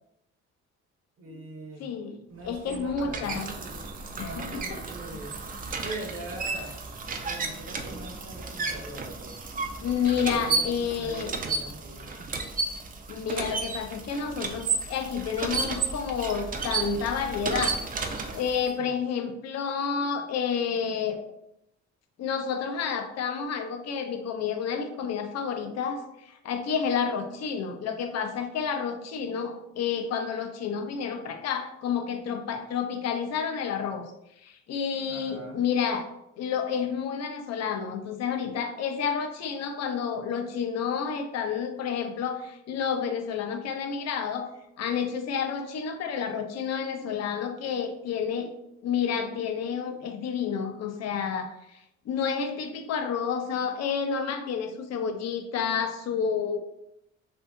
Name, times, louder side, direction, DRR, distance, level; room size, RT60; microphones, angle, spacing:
voice 1, 1.2-5.4 5.8-6.7 7.2-9.4 10.1-12.5 18.8-19.0 35.1-35.6, right 2 dB, 50° right, 1 dB, 0.7 m, -42 dB
voice 2, 1.8-2.2 2.4-3.4 4.2-4.6 9.8-11.3 13.1-17.8 18.3-21.2 22.2-34.0 34.4-36.1 36.4-44.5 44.8-48.5 48.8-56.6, left 6 dB, 60° left, 7 dB, 0.5 m, -30 dB
sound 1, 2.4-18.7, right 4 dB, 30° right, 0.3 m, -33 dB
2.7 x 2.6 x 2.2 m, 0.81 s
cardioid pair, 90°, 30 cm